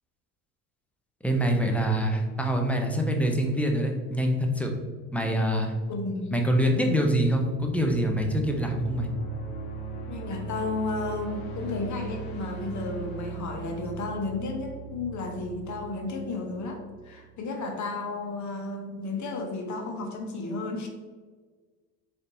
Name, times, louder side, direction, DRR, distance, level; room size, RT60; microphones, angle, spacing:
voice 1, 1.2-4.7 5.1-5.7 6.3-9.1, equal, 5° left, 2 dB, 0.5 m, -25 dB
voice 2, 5.9-6.3 10.1-20.9, left 3 dB, 40° left, 3 dB, 0.9 m, -33 dB
sound 1, 6.6-17.4, right 4 dB, 75° left, 0.8 m, -39 dB
3.9 x 3.4 x 2.6 m, 1.5 s
hypercardioid pair, 80°, 43 cm